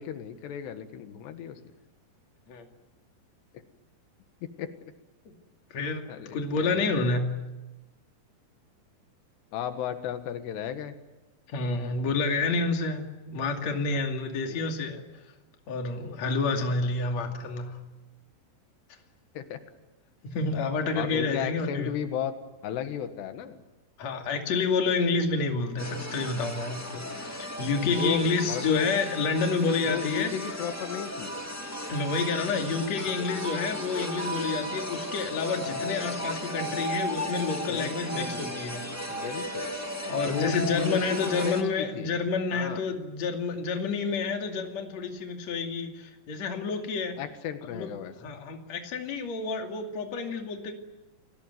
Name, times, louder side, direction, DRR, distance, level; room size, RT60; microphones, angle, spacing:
voice 1, 0.0-1.6 4.4-4.7 6.1-6.9 9.5-11.0 14.5-14.6 19.4-19.6 21.0-22.4 22.6-23.6 27.9-28.9 29.8-31.4 37.7-38.4 39.1-39.7 40.3-42.1 42.5-42.8 47.2-48.3, left 9 dB, 90° left, 8 dB, 3.8 m, -34 dB
voice 2, 5.7-7.4 11.5-15.0 15.7-17.8 20.2-21.9 24.0-30.5 31.9-38.8 40.0-47.2 47.6-47.9 48.2-50.7, left 4 dB, 45° left, 3 dB, 3.3 m, -29 dB
sound 1, 25.8-41.6, equal, 10° left, 0.8 m, -35 dB
29.0 x 19.5 x 9.4 m, 1.0 s
omnidirectional pair, 4.7 m